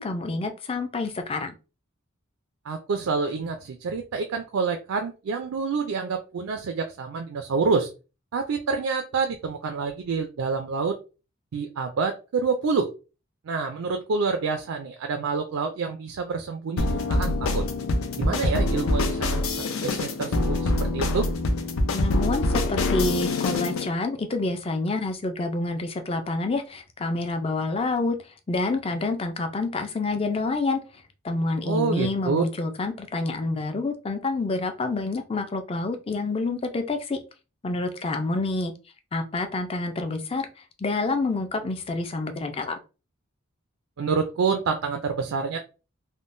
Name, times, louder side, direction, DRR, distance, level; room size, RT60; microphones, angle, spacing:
voice 1, 0.0-1.6 21.9-28.2 28.5-30.8 31.2-37.2 37.6-38.7 39.1-40.5 40.8-42.8, left 3 dB, 25° left, 6 dB, 0.4 m, -28 dB
voice 2, 2.7-7.9 8.3-11.0 11.5-12.9 13.5-17.6 18.2-21.3 31.6-32.4 44.0-45.6, right 4 dB, 80° right, 5 dB, 0.4 m, -27 dB
sound 1, 16.8-23.9, left 2 dB, 85° left, 0.5 m, -25 dB
3.6 x 2.1 x 2.5 m, 0.32 s
head